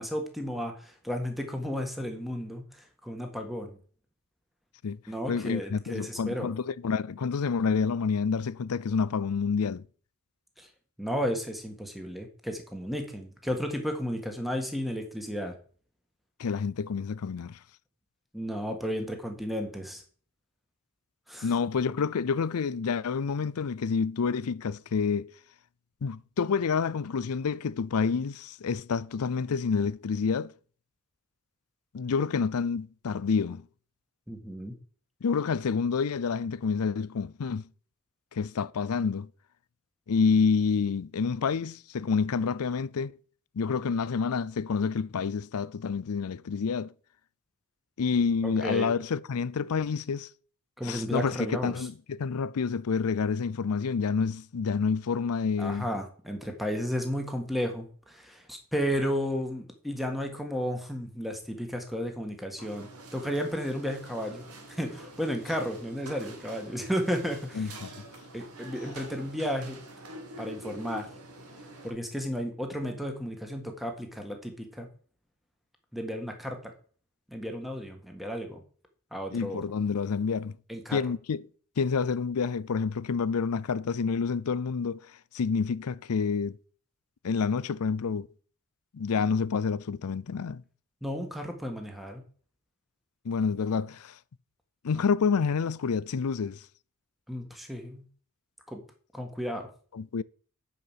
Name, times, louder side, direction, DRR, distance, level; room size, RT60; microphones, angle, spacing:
voice 1, 0.0-3.8 5.1-6.5 10.6-10.7 11.0-15.5 18.3-20.0 21.3-21.5 34.3-34.7 48.4-48.9 50.8-51.8 55.6-67.7 68.3-69.8 70.4-71.1 71.8-74.9 75.9-76.7 77.3-78.6 79.1-79.6 80.7-81.0 91.0-92.2 97.3-98.1 98.7-98.8 99.1-99.7, equal, ahead, 1.7 m, -33 dB
voice 2, 5.3-9.8 16.4-17.6 21.4-25.3 26.0-30.5 31.9-33.6 35.2-37.7 38.3-39.3 40.1-43.1 43.6-46.9 48.0-50.3 50.8-55.9 67.5-67.9 79.3-80.6 80.9-81.4 81.8-85.0 85.3-86.6 87.2-88.3 88.9-90.6 93.2-94.2 94.8-96.6 99.9-100.2, left 5 dB, 80° left, 0.5 m, -28 dB
sound 1, 62.6-71.9, right 1 dB, 85° right, 2.4 m, -46 dB
9.5 x 6.0 x 7.4 m
head